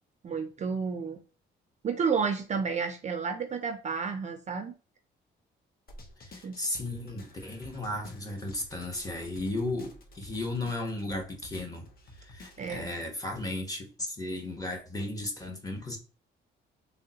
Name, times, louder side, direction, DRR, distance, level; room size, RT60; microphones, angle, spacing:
voice 1, 0.2-1.2 1.8-4.7 6.4-6.6 12.6-12.9, right 5 dB, 35° right, 0.4 m, -31 dB
sound 1, 5.9-12.8, left 1 dB, 50° left, 0.8 m, -51 dB
voice 2, 6.2-11.9 12.2-16.0, left 2 dB, 20° left, 0.9 m, -35 dB
3.5 x 2.1 x 2.7 m
cardioid pair, 90°, 20 cm